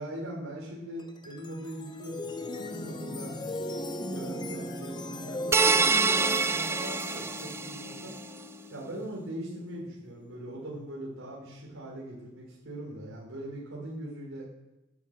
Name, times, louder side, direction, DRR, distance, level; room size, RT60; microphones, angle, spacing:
voice 1, 0.0-3.5 4.1-8.1 8.7-14.5, right 1 dB, 80° right, -3 dB, 4.1 m, -41 dB
sound 1, 1.0-10.3, left 1 dB, 20° left, 0.9 m, -38 dB
sound 2, 5.5-8.0, right 4 dB, 10° right, 0.3 m, -26 dB
10.5 x 9.8 x 8.1 m, 0.95 s
head